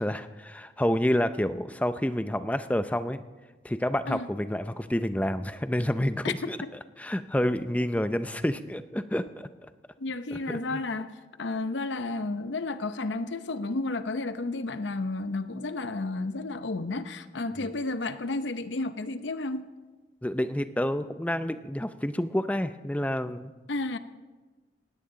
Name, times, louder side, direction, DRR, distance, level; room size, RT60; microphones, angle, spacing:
voice 1, 0.0-3.2 3.6-6.6 7.0-9.7 10.3-10.8 17.6-17.7 20.2-23.5, left 1 dB, 10° left, 11 dB, 0.5 m, -29 dB
voice 2, 10.0-19.7 23.7-24.0, left 2 dB, 80° left, 11 dB, 0.8 m, -32 dB
19.0 x 16.5 x 3.9 m, 1.3 s
head